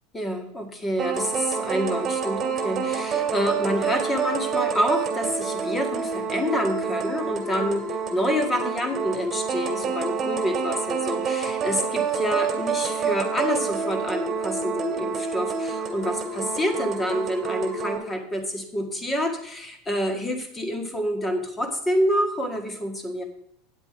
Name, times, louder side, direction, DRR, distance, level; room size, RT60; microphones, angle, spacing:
voice 1, 0.1-23.2, equal, 15° left, 5 dB, 1.7 m, -27 dB
sound 1, 1.0-18.0, right 6 dB, 30° right, 2.3 m, -28 dB
9.1 x 7.8 x 4.9 m, 0.74 s
supercardioid pair, 125°, 0 cm